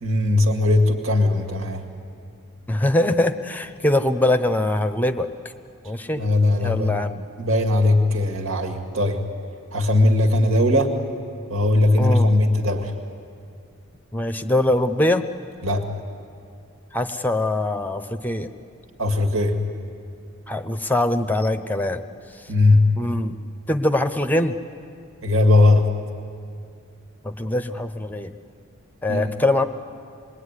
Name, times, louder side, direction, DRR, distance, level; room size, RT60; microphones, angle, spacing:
voice 1, 0.0-1.8 6.2-7.0 7.4-9.2 9.7-10.9 11.5-12.9 15.6-15.9 19.0-19.6 22.5-22.9 25.2-25.9 29.1-29.3, left 2 dB, 70° right, 2 dB, 2.2 m, -19 dB
voice 2, 2.7-5.3 5.8-6.2 6.6-7.2 12.0-12.3 14.1-15.2 16.9-18.5 20.5-22.0 22.3-22.5 23.0-23.4 23.7-24.6 27.2-28.3 29.0-29.6, left 1 dB, 10° left, 9 dB, 0.8 m, -22 dB
26.5 x 21.5 x 9.8 m, 2.4 s
head